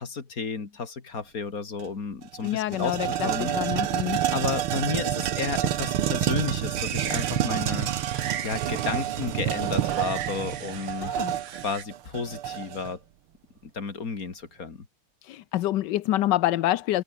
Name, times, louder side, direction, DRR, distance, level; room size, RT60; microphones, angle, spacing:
voice 1, 0.0-3.0 3.2-3.6 3.9-7.9 8.4-11.1 11.5-13.0 13.6-14.9, left 5 dB, 40° left, 2.9 m, -32 dB
sound 1, 1.8-1.9 2.2-12.9, right 11 dB, 90° right, 2.0 m, -28 dB
voice 2, 2.4-4.2 11.0-11.3 15.2-17.0, left 14 dB, 70° left, 1.2 m, -27 dB
sound 2, 6.8-11.8, right 10 dB, 65° right, 0.7 m, -39 dB
omnidirectional pair, 2.3 m